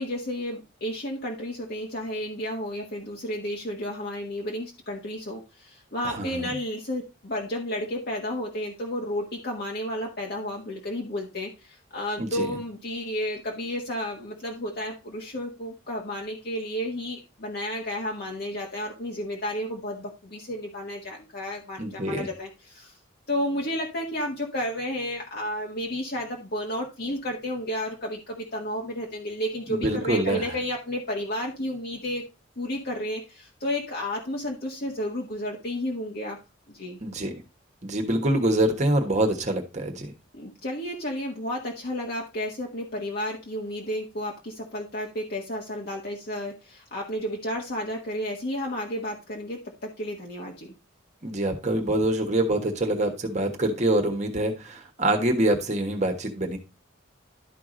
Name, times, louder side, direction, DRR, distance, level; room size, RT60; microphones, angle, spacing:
voice 1, 0.0-23.0 23.3-32.2 32.6-36.4 36.7-37.0 40.3-50.7, left 1 dB, 55° left, -1 dB, 1.5 m, -32 dB
voice 2, 6.0-6.5 12.2-12.5 21.8-22.3 29.7-30.6 37.0-37.3 37.8-40.1 51.2-56.6, right 1 dB, 40° right, 5 dB, 1.3 m, -25 dB
12.0 x 4.8 x 3.8 m, 0.28 s
head